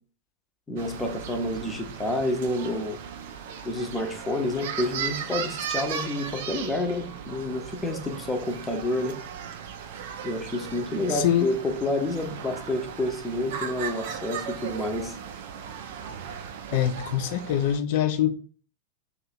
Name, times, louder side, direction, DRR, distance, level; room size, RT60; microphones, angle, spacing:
voice 1, 0.7-3.0 3.6-9.2 10.2-15.1, left 1 dB, 10° left, 0.7 m, -29 dB
sound 1, 0.8-17.8, right 8 dB, 55° right, 0.4 m, -37 dB
voice 2, 11.1-11.5 16.7-18.4, left 10 dB, 50° left, 0.4 m, -24 dB
2.8 x 2.4 x 4.2 m
figure-of-eight pair, 90°, 0 cm